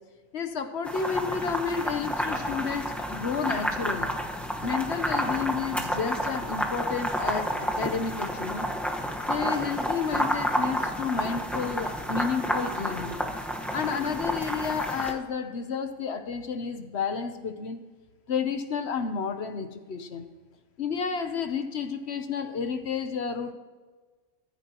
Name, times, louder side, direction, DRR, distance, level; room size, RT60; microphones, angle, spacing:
voice 1, 0.3-4.1 4.6-8.7 9.3-13.2 13.7-17.8 18.3-20.3 20.8-23.5, left 6 dB, 55° left, 8 dB, 1.0 m, -31 dB
sound 1, 0.9-15.1, equal, ahead, 1.0 m, -30 dB
23.0 x 10.0 x 2.9 m, 1.4 s
omnidirectional pair, 1.5 m